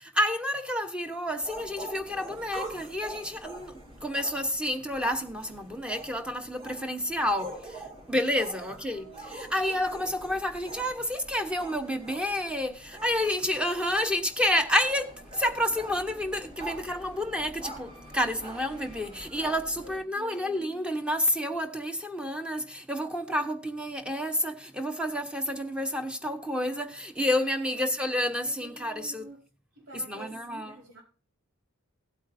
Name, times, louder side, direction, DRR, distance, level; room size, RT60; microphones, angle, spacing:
voice 1, 0.0-29.2 29.9-30.7, left 1 dB, 5° right, 1.1 m, -30 dB
sound 1, 1.4-20.0, right 1 dB, 25° right, 3.9 m, -45 dB
voice 2, 8.6-9.4 19.7-20.7 27.6-27.8 28.4-29.5 29.7-31.0, right 2 dB, 65° right, 4.7 m, -49 dB
16.5 x 8.4 x 2.7 m
head